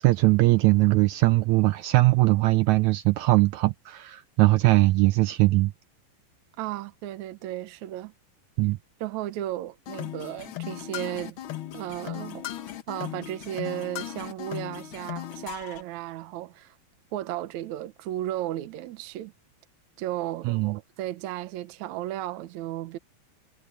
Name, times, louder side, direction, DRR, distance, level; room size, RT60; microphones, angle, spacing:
voice 1, 0.0-5.7 8.6-8.8 20.4-20.8, right 19 dB, 85° right, 1.6 m, -21 dB
voice 2, 6.6-8.1 9.0-11.4 11.7-12.5 12.9-16.8 17.1-19.3 20.0-20.5 21.0-23.0, right 13 dB, 70° right, 2.1 m, -34 dB
sound 1, 9.9-15.8, left 12 dB, 85° left, 1.1 m, -37 dB
omnidirectional pair, 3.9 m